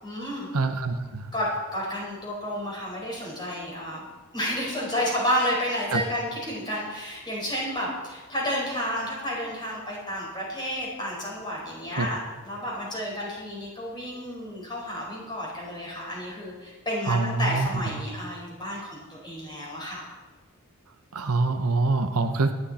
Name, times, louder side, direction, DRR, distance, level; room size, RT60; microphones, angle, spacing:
voice 1, 0.0-0.5 1.3-4.0 4.3-12.2 12.4-20.0, equal, 20° left, -4 dB, 5.0 m, -31 dB
voice 2, 0.5-1.3 5.9-6.0 12.0-12.1 17.1-17.7 21.1-22.5, right 3 dB, 90° right, 7 dB, 1.0 m, -25 dB
18.0 x 11.5 x 4.3 m, 1.3 s
head